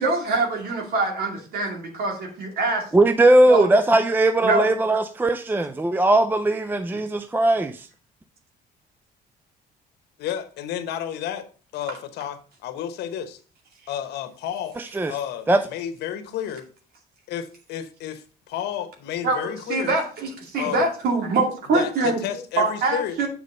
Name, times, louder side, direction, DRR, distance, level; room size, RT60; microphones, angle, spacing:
voice 1, 0.0-2.9 3.5-3.7 4.4-4.7 19.2-22.2 22.6-23.3, right 3 dB, 65° right, 2.4 m, -24 dB
voice 2, 2.9-7.9 14.8-15.1 15.5-15.6, right 2 dB, 10° right, 0.4 m, -19 dB
voice 3, 10.2-11.5 11.7-13.4 13.9-14.8 15.1-16.7 17.3-19.9 20.5-20.9 21.7-23.3, left 10 dB, 80° left, 1.1 m, -31 dB
7.1 x 5.0 x 5.4 m
cardioid pair, 110°, 17 cm